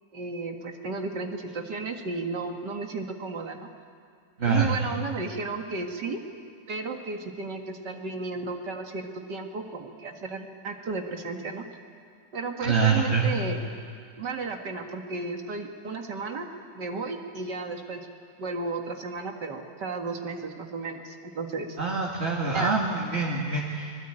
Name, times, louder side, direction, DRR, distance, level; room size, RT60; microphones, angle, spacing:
voice 1, 0.1-3.7 4.5-6.2 6.7-11.7 12.3-13.6 14.1-16.5 16.7-18.1 18.4-21.8 22.5-22.7, right 4 dB, 70° right, 4 dB, 2.4 m, -33 dB
voice 2, 4.4-4.8 12.6-13.3 21.8-23.9, right 4 dB, 35° right, -1 dB, 2.3 m, -25 dB
25.0 x 20.5 x 9.0 m, 2.2 s
omnidirectional pair, 1.9 m